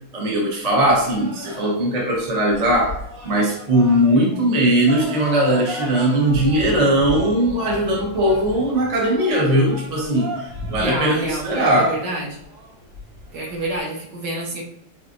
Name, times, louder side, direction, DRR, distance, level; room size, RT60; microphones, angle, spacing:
voice 1, 0.1-3.0 3.2-12.0, right 1 dB, 40° right, -2 dB, 0.5 m, -19 dB
sound 1, 0.9-13.8, equal, 75° right, 2.2 m, -35 dB
voice 2, 10.8-12.4 13.3-14.6, right 1 dB, 55° right, -2 dB, 1.4 m, -28 dB
5.2 x 3.3 x 2.6 m, 0.75 s
omnidirectional pair, 2.4 m